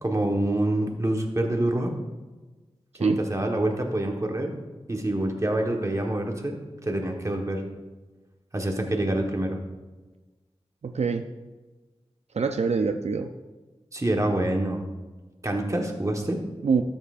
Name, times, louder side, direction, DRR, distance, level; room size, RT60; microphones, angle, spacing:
voice 1, 0.0-2.0 3.0-4.6 4.9-7.6 8.5-9.6 13.9-14.8 15.4-16.4, right 1 dB, 30° right, 2 dB, 1.2 m, -26 dB
voice 2, 10.8-11.2 12.3-13.3 16.6-16.8, right 5 dB, 80° right, 6 dB, 0.4 m, -25 dB
12.5 x 7.4 x 2.5 m, 1.2 s
wide cardioid pair, 75°, 11 cm